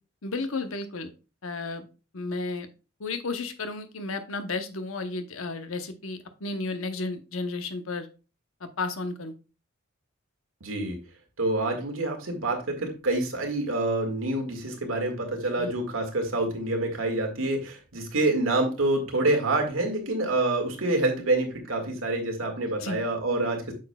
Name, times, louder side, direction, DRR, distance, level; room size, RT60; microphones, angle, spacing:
voice 1, 0.2-1.1 1.4-1.9 2.1-2.7 3.0-8.1 8.6-9.3 15.6-15.7 22.8-23.0, left 3 dB, 80° left, 8 dB, 0.9 m, -33 dB
voice 2, 10.6-11.0 11.4-23.7, right 2 dB, 85° right, 3 dB, 2.0 m, -27 dB
8.4 x 6.3 x 2.3 m, 0.33 s
head